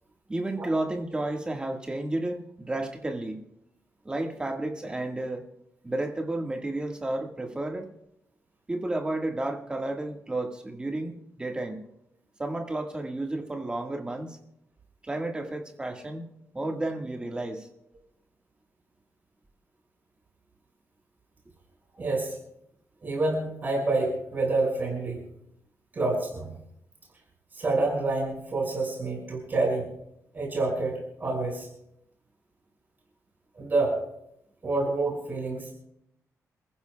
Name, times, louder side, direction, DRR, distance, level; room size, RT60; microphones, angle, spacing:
voice 1, 0.3-3.4 4.0-5.5 5.8-7.9 8.7-11.8 12.4-14.4 15.0-16.2 16.5-17.7, right 2 dB, 15° right, 2 dB, 1.7 m, -32 dB
voice 2, 21.9-22.4 23.0-25.2 25.9-26.5 27.5-29.9 30.3-31.7 33.5-34.0 34.6-35.7, right 2 dB, 30° right, -1 dB, 6.1 m, -28 dB
29.0 x 15.0 x 2.3 m, 0.79 s
wide cardioid pair, 165°, 6 cm